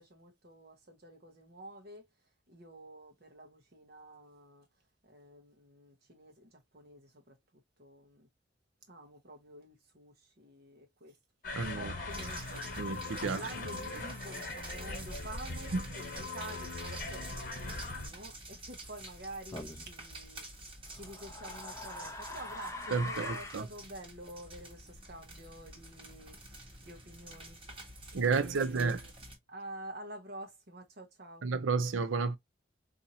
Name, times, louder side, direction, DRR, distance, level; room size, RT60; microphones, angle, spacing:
voice 1, 0.0-2.1 2.5-4.7 5.0-7.4 7.8-8.3 8.9-11.2 11.5-12.6 13.2-20.4 20.9-27.6 28.0-28.9 29.2-31.4, right 1 dB, 50° right, 0.8 m, -49 dB
sound 1, 11.4-18.1, left 3 dB, 45° left, 1.2 m, -40 dB
voice 2, 11.6-11.9 12.8-13.4 15.7-15.8 22.9-23.6 28.1-29.0 31.4-32.4, right 4 dB, 85° right, 0.5 m, -31 dB
sound 2, 12.1-29.4, right 2 dB, 25° right, 1.2 m, -49 dB
sound 3, 19.5-19.9 20.9-23.7, left 2 dB, 15° left, 0.5 m, -42 dB
4.1 x 2.7 x 2.6 m
head